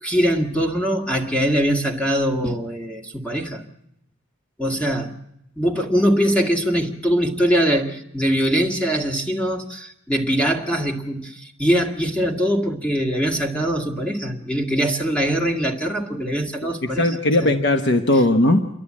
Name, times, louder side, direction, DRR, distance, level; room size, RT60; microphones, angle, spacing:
voice 1, 0.0-3.6 4.6-5.1 5.6-17.1 17.4-17.5, equal, 5° left, 2 dB, 1.9 m, -22 dB
voice 2, 16.6-18.6, left 1 dB, 60° left, 6 dB, 1.1 m, -18 dB
28.0 x 11.0 x 8.6 m, 0.78 s
head